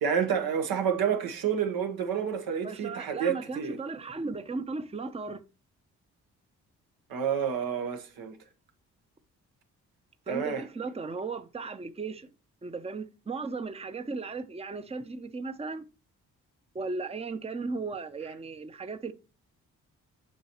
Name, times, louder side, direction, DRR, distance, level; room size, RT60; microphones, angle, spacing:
voice 1, 0.0-3.8 7.1-8.3 10.3-10.6, right 7 dB, 75° right, 1.3 m, -29 dB
voice 2, 2.6-5.4 10.3-12.3 12.6-15.9 16.7-19.1, right 4 dB, 15° right, 0.7 m, -36 dB
7.2 x 5.4 x 3.0 m
hypercardioid pair, 45°, 36 cm